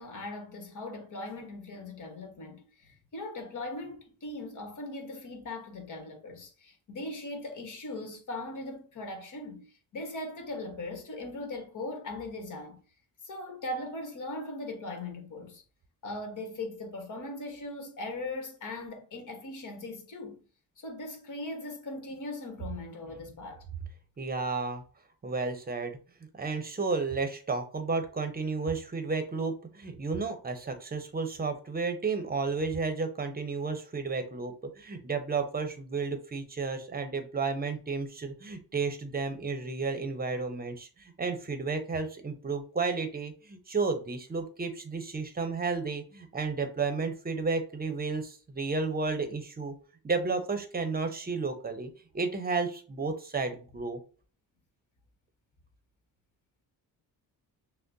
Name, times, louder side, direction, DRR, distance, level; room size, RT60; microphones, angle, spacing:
voice 1, 0.0-12.8 13.2-15.6 16.0-20.4 20.8-23.6, left 2 dB, 55° left, 1.3 m, -39 dB
voice 2, 24.2-24.8 25.2-26.0 26.3-49.7 50.0-54.0, right 4 dB, 25° right, 0.8 m, -32 dB
6.2 x 2.2 x 2.7 m
cardioid pair, 115°, 37 cm